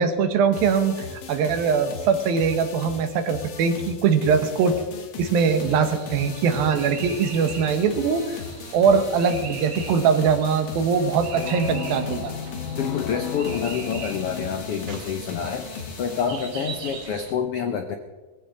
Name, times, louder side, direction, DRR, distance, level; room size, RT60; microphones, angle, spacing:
voice 1, 0.0-4.8 5.2-8.4 8.7-12.3, right 6 dB, 85° right, 8 dB, 3.1 m, -22 dB
sound 1, 0.5-17.1, left 6 dB, 55° left, 2.3 m, -39 dB
sound 2, 5.4-17.3, right 4 dB, 55° right, 3.2 m, -40 dB
sound 3, 11.3-14.5, left 9 dB, 70° left, 1.9 m, -33 dB
voice 2, 12.8-18.0, left 7 dB, 85° left, 6 dB, 1.2 m, -28 dB
20.5 x 15.5 x 3.9 m, 1.3 s
omnidirectional pair, 4.1 m